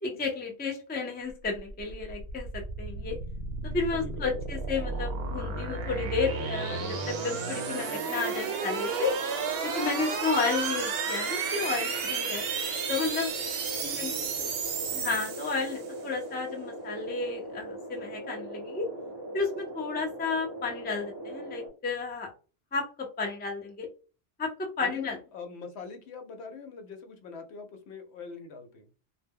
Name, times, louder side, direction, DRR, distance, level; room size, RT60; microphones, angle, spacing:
voice 1, 0.0-3.2 3.6-9.2 9.6-12.4 12.9-13.4 14.0-14.1 14.9-18.9 19.3-22.3 22.7-23.9 24.4-25.2, left 4 dB, 15° left, 1 dB, 0.3 m, -32 dB
sound 1, 1.4-16.0, right 5 dB, 70° right, 0.8 m, -33 dB
voice 2, 3.9-4.6 13.8-14.7 24.8-28.9, left 4 dB, 80° left, 6 dB, 0.9 m, -43 dB
sound 2, 6.2-21.7, right 1 dB, 30° right, 0.6 m, -40 dB
2.1 x 2.0 x 3.5 m, 0.34 s
omnidirectional pair, 1.1 m